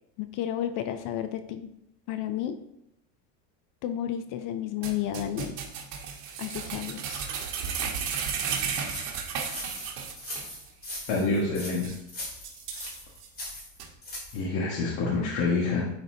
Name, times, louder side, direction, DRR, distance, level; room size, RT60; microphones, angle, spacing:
voice 1, 0.2-1.7 2.1-2.6 3.8-5.6 6.4-7.3, left 11 dB, 45° left, 10 dB, 0.4 m, -32 dB
sound 1, 4.8-10.6 10.8-10.9 11.4-11.5 11.8-12.0 12.4-13.3 13.8-13.9, right 6 dB, 75° right, 1.5 m, -34 dB
sound 2, 8.8-14.4, left 1 dB, 20° left, 2.1 m, -40 dB
voice 2, 11.1-11.9 14.3-15.9, left 3 dB, 65° left, -5 dB, 1.6 m, -27 dB
10.0 x 4.1 x 2.8 m, 0.84 s
supercardioid pair, 135°, 49 cm